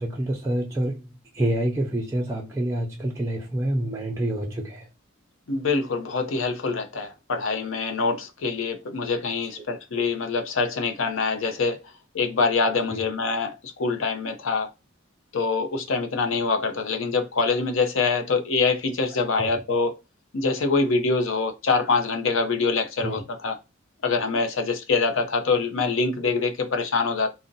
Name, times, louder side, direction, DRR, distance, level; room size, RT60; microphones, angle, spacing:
voice 1, 0.0-4.9 12.9-13.0 19.4-19.6 23.0-23.2, right 1 dB, 15° right, 0.5 m, -27 dB
voice 2, 5.5-11.8 12.1-14.7 15.3-20.0 20.3-23.6 24.0-27.3, left 4 dB, 85° left, 0.6 m, -25 dB
2.5 x 2.1 x 3.8 m
head